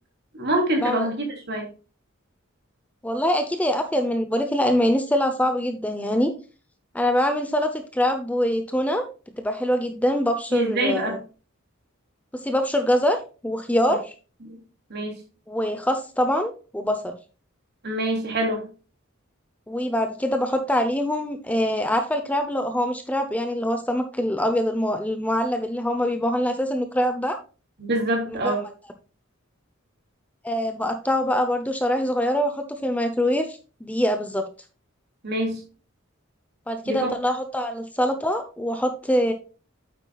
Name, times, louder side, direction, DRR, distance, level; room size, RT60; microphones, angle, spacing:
voice 1, 0.3-1.7 10.5-11.2 14.4-14.6 14.9-15.1 17.8-18.7 27.8-28.6 35.2-35.6 36.8-37.1, right 1 dB, 55° right, 2 dB, 3.0 m, -25 dB
voice 2, 3.0-6.3 6.9-9.1 9.4-11.2 12.3-13.2 13.4-14.1 15.5-17.2 19.7-27.4 28.4-28.5 30.4-34.5 36.7-39.3, equal, 5° left, 7 dB, 0.7 m, -24 dB
9.1 x 8.0 x 2.4 m, 0.34 s
head